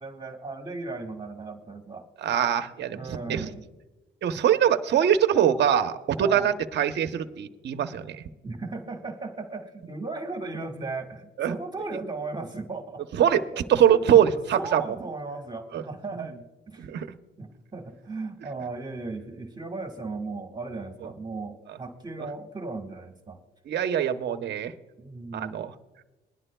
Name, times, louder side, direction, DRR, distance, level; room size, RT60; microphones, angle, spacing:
voice 1, 0.0-2.0 2.9-3.7 6.1-6.5 8.4-13.0 13.5-14.2 14.5-16.4 16.7-16.9 17.4-23.4 25.0-25.7, right 3 dB, 20° right, 4 dB, 1.4 m, -36 dB
voice 2, 2.2-3.5 4.2-8.2 11.4-11.5 13.2-13.4 13.7-14.8 15.7-15.8 16.8-17.1 23.7-24.7 25.3-25.7, right 9 dB, 60° right, 8 dB, 0.8 m, -23 dB
21.5 x 11.0 x 2.2 m, 1.1 s
cardioid pair, 90°, 20 cm